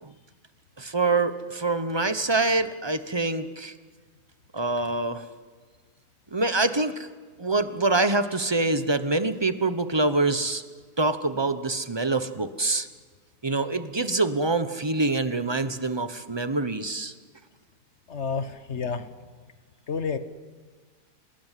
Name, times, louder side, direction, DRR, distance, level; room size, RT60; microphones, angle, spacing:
voice 1, 0.8-3.7 4.5-5.2 6.3-7.1 7.4-10.6 11.0-12.9 13.4-17.1, right 2 dB, 20° right, 11 dB, 0.9 m, -25 dB
voice 2, 18.1-19.1 19.9-20.2, left 5 dB, 45° left, 12 dB, 1.4 m, -30 dB
27.5 x 19.5 x 9.3 m, 1.5 s
omnidirectional pair, 1.7 m